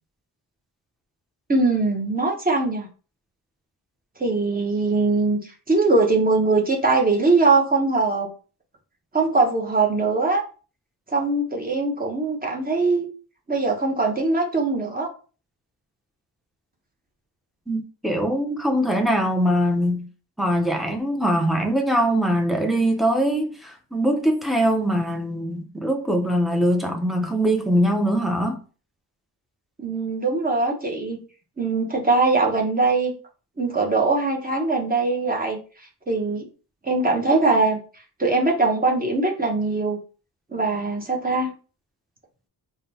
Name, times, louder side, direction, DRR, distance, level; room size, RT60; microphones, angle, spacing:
voice 1, 1.5-2.9 4.2-8.3 9.1-10.4 11.1-13.1 13.5-15.1 29.8-31.2 31.6-33.1 33.6-35.6 36.1-36.5 36.8-37.8 38.2-40.0 40.5-41.5, right 3 dB, 20° right, 0.9 m, -21 dB
voice 2, 17.7-20.0 20.4-28.6, equal, ahead, 0.7 m, -22 dB
3.7 x 2.2 x 4.1 m
wide cardioid pair, 115°, 40 cm